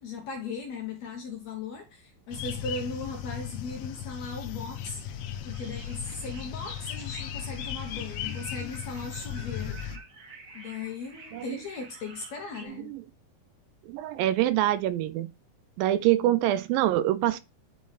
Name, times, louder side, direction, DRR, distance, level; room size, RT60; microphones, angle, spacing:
voice 1, 0.0-9.8 10.5-12.9, left 4 dB, 65° left, 1.8 m, -38 dB
sound 1, 2.3-10.0, left 9 dB, 85° left, 1.5 m, -36 dB
sound 2, 5.5-12.7, right 4 dB, 55° right, 2.1 m, -50 dB
voice 2, 13.9-15.3 15.8-17.4, right 13 dB, 80° right, 2.3 m, -25 dB
10.5 x 3.9 x 3.3 m
omnidirectional pair, 4.2 m